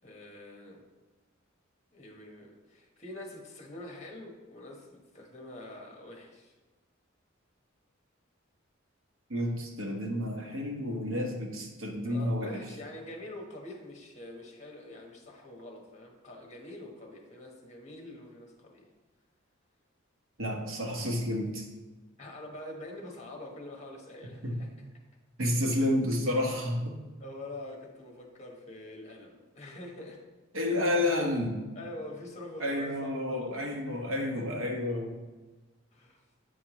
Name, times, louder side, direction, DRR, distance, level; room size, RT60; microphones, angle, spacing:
voice 1, 0.0-0.8 1.9-6.5 12.1-18.9 22.2-24.7 25.8-25.9 27.2-30.2 31.7-33.6 35.9-36.2, left 1 dB, 35° left, 0 dB, 1.2 m, -45 dB
voice 2, 9.3-12.6 20.4-21.6 24.4-24.6 25.4-27.0 30.5-31.6 32.6-35.2, left 1 dB, 75° right, 1 dB, 1.2 m, -30 dB
8.1 x 4.7 x 3.0 m, 1.2 s
head